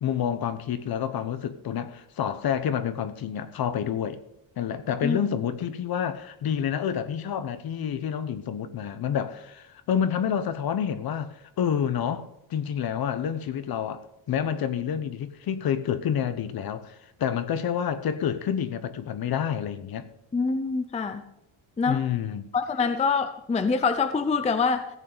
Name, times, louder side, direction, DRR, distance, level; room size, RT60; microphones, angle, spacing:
voice 1, 0.0-4.2 4.6-20.1 21.8-22.4, left 8 dB, 45° left, 1.0 m, -28 dB
voice 2, 20.3-21.2 21.8-22.0 22.5-24.9, left 4 dB, 15° left, 0.5 m, -25 dB
15.5 x 8.5 x 5.0 m
cardioid pair, 170°, 49 cm